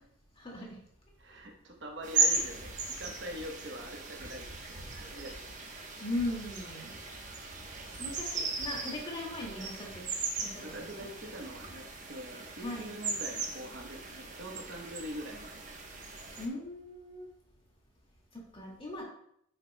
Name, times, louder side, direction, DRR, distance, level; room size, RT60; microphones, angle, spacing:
voice 1, 0.4-0.7 2.2-2.5 6.0-6.9 8.0-10.0 10.4-10.8 12.6-12.9 16.4-17.3 18.3-19.0, left 1 dB, 25° left, -3 dB, 2.1 m, -38 dB
voice 2, 1.2-5.3 10.6-15.6, equal, 55° right, 1 dB, 1.1 m, -44 dB
sound 1, 2.0-16.5, right 4 dB, 35° right, 1.1 m, -37 dB
10.0 x 6.7 x 2.2 m, 0.70 s
head